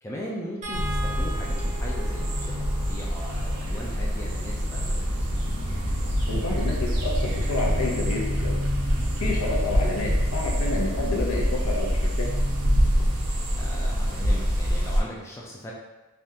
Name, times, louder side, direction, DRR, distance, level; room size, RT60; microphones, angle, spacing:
voice 1, 0.0-5.1 13.6-15.7, equal, 10° left, -4 dB, 0.3 m, -38 dB
sound 1, 0.6-6.9 8.5-8.6 9.0-9.1, right 2 dB, 35° right, 0.6 m, -42 dB
sound 2, 0.7-15.0, equal, 85° right, 0.7 m, -25 dB
voice 2, 6.3-8.6 9.2-12.3, left 2 dB, 75° left, -1 dB, 0.7 m, -29 dB
3.4 x 2.4 x 2.7 m, 1.1 s
head